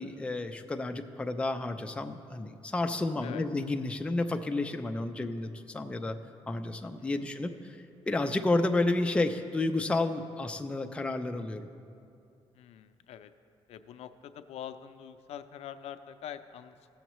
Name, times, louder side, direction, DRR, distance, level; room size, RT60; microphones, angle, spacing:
voice 1, 0.0-6.2 6.5-7.8 8.1-11.7, left 2 dB, 10° left, 5 dB, 0.4 m, -31 dB
voice 2, 12.5-13.3 13.7-16.9, left 9 dB, 90° left, 10 dB, 0.4 m, -44 dB
16.5 x 7.1 x 3.0 m, 2.5 s
cardioid pair, 155°, 10 cm